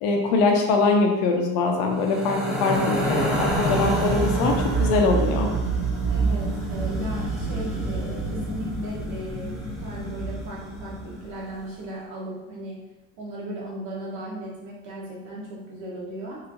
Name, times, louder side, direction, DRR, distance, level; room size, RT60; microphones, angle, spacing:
voice 1, 0.0-4.5 4.8-5.5, left 3 dB, 85° left, 2 dB, 0.7 m, -22 dB
sound 1, 2.0-11.3, right 2 dB, ahead, 0.7 m, -26 dB
voice 2, 6.1-12.7 13.2-16.4, right 1 dB, 90° right, -5 dB, 1.3 m, -36 dB
3.2 x 2.8 x 2.6 m, 1.0 s
supercardioid pair, 105°, 40 cm